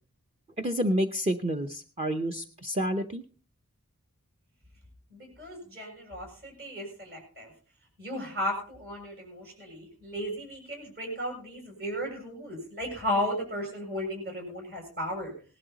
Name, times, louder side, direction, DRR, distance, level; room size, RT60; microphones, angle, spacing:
voice 1, 0.6-3.2, equal, 25° right, 5 dB, 0.8 m, -29 dB
voice 2, 5.1-7.5 8.0-15.3, equal, 45° right, 0 dB, 6.9 m, -35 dB
18.5 x 12.0 x 4.1 m, 0.39 s
head